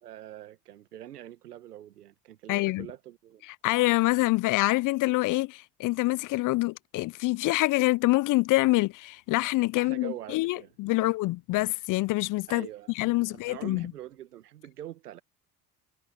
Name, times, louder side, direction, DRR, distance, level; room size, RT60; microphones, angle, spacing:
voice 1, 0.0-3.4 9.8-11.1 12.5-12.9 13.3-15.2, right 12 dB, 90° right, 1.8 m, -44 dB
voice 2, 2.5-2.9 3.6-12.7 13.0-13.9, left 20 dB, 45° left, 0.4 m, -26 dB
hypercardioid pair, 60°, 45 cm